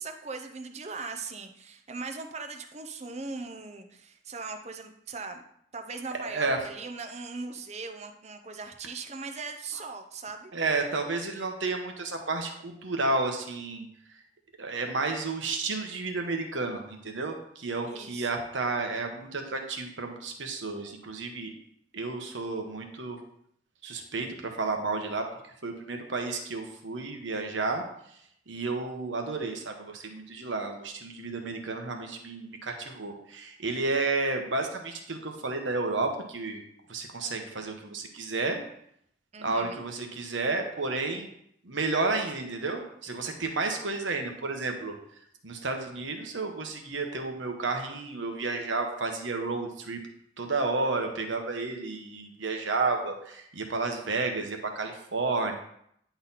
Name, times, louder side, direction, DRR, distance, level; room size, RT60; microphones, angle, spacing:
voice 1, 0.0-5.4 5.7-10.5 17.9-18.3 39.3-39.8, right 4 dB, 35° right, 6 dB, 0.7 m, -39 dB
voice 2, 6.2-6.6 10.5-13.9 14.6-21.5 21.9-23.2 23.8-25.2 25.6-27.8 28.5-36.6 36.9-38.6 39.4-41.3 41.6-45.0 45.4-50.0 50.4-55.6, right 3 dB, 80° right, 4 dB, 1.2 m, -31 dB
10.0 x 4.1 x 4.1 m, 0.71 s
head